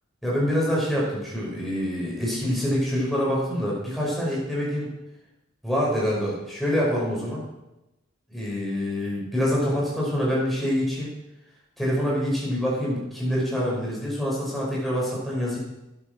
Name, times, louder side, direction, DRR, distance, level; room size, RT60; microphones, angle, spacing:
voice 1, 0.2-4.9 5.6-7.4 8.3-11.1 11.8-15.6, equal, ahead, -5 dB, 5.5 m, -26 dB
12.5 x 9.9 x 6.2 m, 0.94 s
head